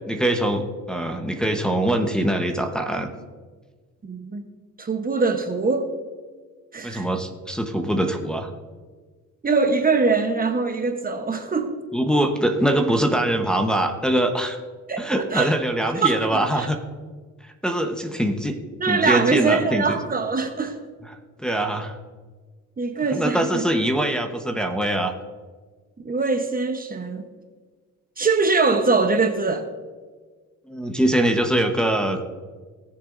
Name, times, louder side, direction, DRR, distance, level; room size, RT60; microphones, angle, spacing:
voice 1, 0.1-3.1 6.8-8.5 11.9-14.6 15.0-16.8 17.4-18.6 18.9-20.0 21.4-21.9 23.1-25.1 30.7-32.2, right 1 dB, 5° left, 2 dB, 1.0 m, -23 dB
voice 2, 4.0-4.4 4.8-5.9 6.7-7.1 9.4-11.7 14.9-15.5 15.9-16.7 18.8-20.8 22.8-23.6 26.0-27.2 28.2-29.7, right 4 dB, 30° right, 6 dB, 1.0 m, -23 dB
18.5 x 6.9 x 2.6 m, 1.4 s
cardioid pair, 90°, 30 cm